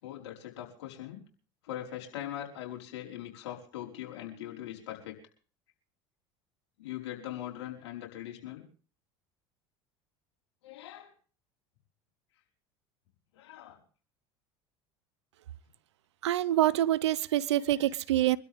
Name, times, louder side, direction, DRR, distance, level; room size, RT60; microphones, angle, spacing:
voice 1, 0.0-1.2 1.6-5.2 6.8-8.6 10.6-11.1 13.3-13.8 18.2-18.3, left 12 dB, 80° left, 5.1 m, -41 dB
voice 2, 16.2-18.4, right 13 dB, 90° right, 0.8 m, -26 dB
25.5 x 12.5 x 3.6 m
hypercardioid pair, 90°, 14 cm